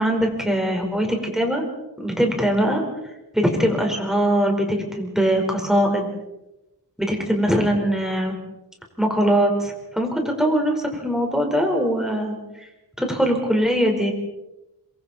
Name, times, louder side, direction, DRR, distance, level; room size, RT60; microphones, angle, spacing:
voice 1, 0.0-1.6 2.0-2.8 3.3-6.1 7.0-8.4 9.0-12.7 13.0-14.1, equal, ahead, 1 dB, 4.9 m, -21 dB
27.5 x 22.5 x 4.5 m, 0.97 s
wide cardioid pair, 85°, 39 cm